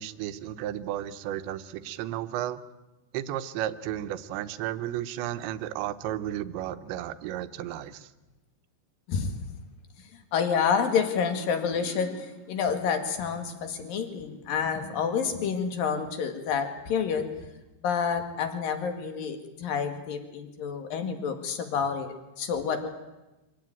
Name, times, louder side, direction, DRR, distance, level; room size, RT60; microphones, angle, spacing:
voice 1, 0.0-2.6 3.1-8.1, right 12 dB, 85° right, 11 dB, 3.2 m, -33 dB
voice 2, 10.3-17.3 17.8-22.9, left 6 dB, 55° left, 6 dB, 3.5 m, -29 dB
25.0 x 16.5 x 9.3 m, 1.1 s
omnidirectional pair, 5.1 m